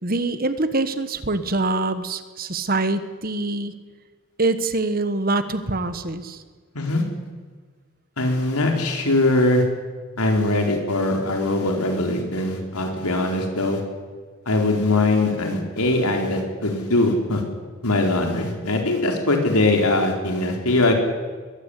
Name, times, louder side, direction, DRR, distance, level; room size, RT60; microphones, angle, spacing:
voice 1, 0.0-3.8 4.4-6.4, right 2 dB, 40° right, 11 dB, 1.4 m, -24 dB
voice 2, 8.2-9.7 10.2-13.8 14.5-17.4 17.8-20.9, left 2 dB, 90° left, 2 dB, 4.4 m, -21 dB
22.0 x 15.0 x 9.9 m, 1.5 s
head